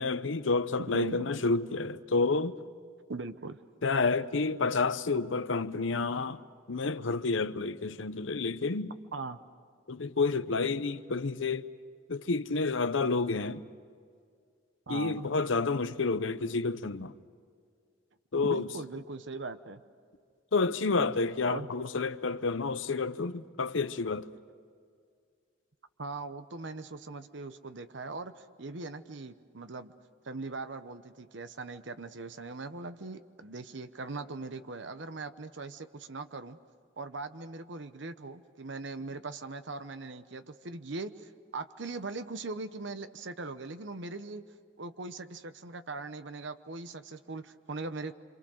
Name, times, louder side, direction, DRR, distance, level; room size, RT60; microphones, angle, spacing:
voice 1, 0.0-2.6 3.8-8.9 9.9-11.7 12.1-13.6 14.9-17.1 18.3-18.7 20.5-24.3, left 3 dB, 80° left, 0.8 m, -29 dB
voice 2, 0.9-1.3 3.1-3.6 9.1-9.4 14.9-15.3 18.4-19.8 21.4-21.7 26.0-29.9 30.2-36.6 37.0-44.4 44.8-48.1, right 3 dB, 70° right, 0.9 m, -40 dB
27.5 x 26.5 x 6.4 m
head